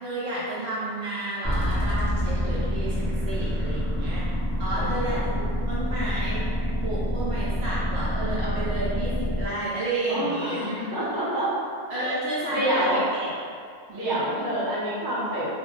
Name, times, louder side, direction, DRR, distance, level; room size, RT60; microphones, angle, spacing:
voice 1, 0.0-4.2 4.6-6.4 6.8-10.8 11.9-13.3 13.9-14.2, right 1 dB, 65° right, -7 dB, 0.7 m, -31 dB
sound 1, 1.4-9.5, equal, ahead, 0.9 m, -27 dB
voice 2, 4.7-5.3 10.1-11.5 11.9-12.1 12.5-13.0 13.9-15.5, right 1 dB, 25° right, -9 dB, 0.5 m, -27 dB
2.2 x 2.1 x 3.7 m, 2.2 s
omnidirectional pair, 1.3 m